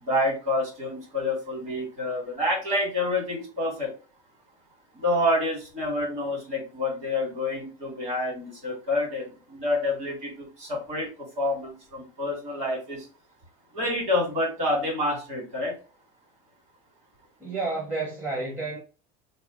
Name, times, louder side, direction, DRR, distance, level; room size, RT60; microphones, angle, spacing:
voice 1, 0.0-3.9 4.9-13.1 13.7-15.8, left 1 dB, 40° right, 2.1 m, -28 dB
voice 2, 17.4-18.8, right 3 dB, 10° right, 0.9 m, -30 dB
3.2 x 2.8 x 3.7 m
cardioid pair, 160°, 17 cm